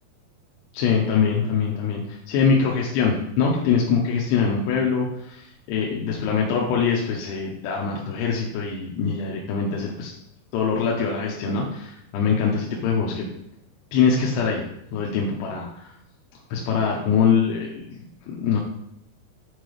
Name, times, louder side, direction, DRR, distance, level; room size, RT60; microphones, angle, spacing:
voice 1, 0.7-10.1 10.5-13.3 13.9-14.6 14.9-15.9 16.5-18.0 18.3-18.6, left 6 dB, 85° left, -2 dB, 2.9 m, -23 dB
7.8 x 4.5 x 3.3 m, 0.78 s
omnidirectional pair, 5.0 m